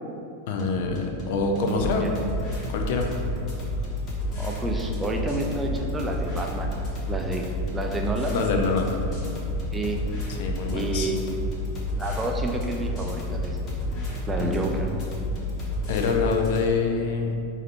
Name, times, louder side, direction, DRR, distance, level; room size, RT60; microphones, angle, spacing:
voice 1, 0.5-2.1 2.7-3.1 8.3-8.9 10.4-11.1 14.4-14.6 15.9-17.4, left 4 dB, 50° left, 3 dB, 0.4 m, -25 dB
sound 1, 0.6-16.6, left 1 dB, 30° left, 0.8 m, -30 dB
voice 2, 1.7-2.1 4.3-6.7 7.1-7.4 7.7-8.4 9.7-10.0 10.7-11.4 12.0-13.6 14.3-14.9, right 2 dB, 15° right, 2 dB, 0.4 m, -30 dB
4.9 x 2.7 x 3.2 m, 2.6 s
figure-of-eight pair, 90°, 0 cm